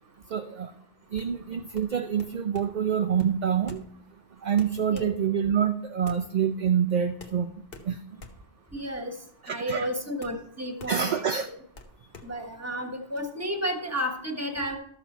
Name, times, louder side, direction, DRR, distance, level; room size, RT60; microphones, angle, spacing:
voice 1, 0.3-0.7 1.1-3.8 4.4-7.5 7.8-8.2 9.4-9.9 10.9-11.5, right 8 dB, 50° right, 5 dB, 0.6 m, -26 dB
sound 1, 1.1-13.2, left 3 dB, 55° left, 1.1 m, -49 dB
voice 2, 8.7-9.2 9.5-11.2 12.2-14.8, equal, 15° right, 4 dB, 1.3 m, -32 dB
13.0 x 6.6 x 4.5 m, 0.68 s
omnidirectional pair, 1.2 m